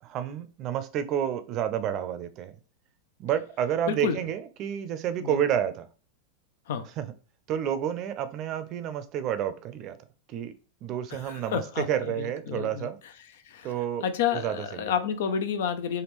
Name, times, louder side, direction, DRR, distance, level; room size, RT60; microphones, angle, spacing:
voice 1, 0.0-2.6 3.2-5.9 7.0-7.1 7.5-10.0 10.3-10.5 10.8-13.0 13.6-14.0 14.3-14.9, right 9 dB, 45° right, 0.5 m, -30 dB
voice 2, 3.9-4.2 5.2-5.4 6.7-6.9 11.1-12.9 13.5-13.7 14.0-16.0, left 7 dB, 70° left, 0.4 m, -30 dB
3.5 x 2.2 x 3.0 m
hypercardioid pair, 110°, 0 cm